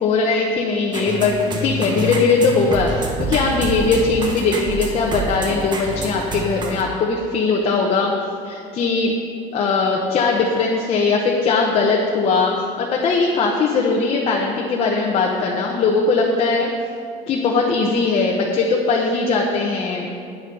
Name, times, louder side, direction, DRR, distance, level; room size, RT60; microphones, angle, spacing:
voice 1, 0.0-1.4 1.6-8.1 8.4-9.2 9.5-12.5 12.8-16.7 17.3-20.1, left 4 dB, 40° left, -1 dB, 1.0 m, -19 dB
sound 1, 0.9-6.8, right 2 dB, 30° right, 1.1 m, -27 dB
9.5 x 9.0 x 5.4 m, 2.4 s
cardioid pair, 160°, 16 cm